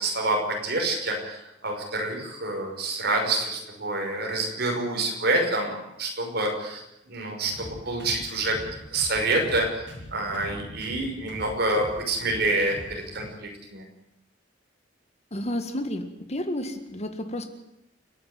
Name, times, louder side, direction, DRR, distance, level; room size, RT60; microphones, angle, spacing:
voice 1, 0.0-8.6 8.9-13.8, right 2 dB, 60° right, 2 dB, 5.8 m, -27 dB
sound 1, 7.4-13.3, equal, 80° right, 5.5 m, -43 dB
voice 2, 15.3-17.5, left 1 dB, 35° left, 8 dB, 1.8 m, -31 dB
29.5 x 10.5 x 9.3 m, 0.85 s
head